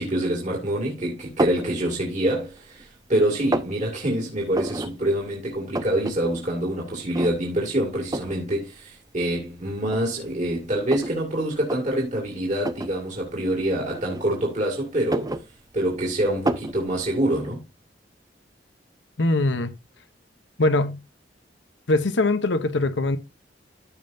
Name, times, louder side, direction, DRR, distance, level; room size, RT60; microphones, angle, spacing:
voice 1, 0.0-15.4 15.7-17.6, right 1 dB, 45° right, 2.5 m, -26 dB
sound 1, 1.4-1.7 2.2-2.9 3.2-3.8 4.5-4.9 5.2-5.3 5.5-6.2 6.5-6.6 7.1-7.6 8.1-8.4 9.2-9.3 9.9-11.2 11.6-11.8 12.6-13.0 13.9-14.6 14.9-16.0 16.5-16.8, right 1 dB, 20° right, 0.6 m, -28 dB
voice 2, 19.2-19.7 20.6-21.0 21.9-23.2, left 2 dB, 90° left, 0.9 m, -22 dB
14.5 x 5.5 x 2.7 m
head